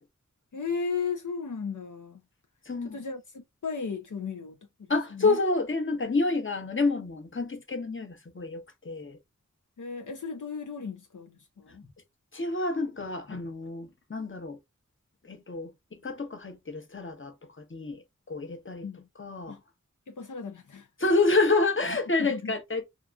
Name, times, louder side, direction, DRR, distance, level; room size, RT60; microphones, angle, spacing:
voice 1, 0.5-2.2 2.8-5.4 9.8-11.8 18.8-19.0 19.5-19.6 20.1-20.9 22.2-22.5, left 5 dB, 75° left, 0.6 m, -35 dB
voice 2, 2.7-3.0 4.9-9.2 12.3-14.6 15.2-18.9 19.2-19.6 21.0-22.8, left 3 dB, 40° left, 0.8 m, -28 dB
2.8 x 2.4 x 2.3 m
wide cardioid pair, 45°, 31 cm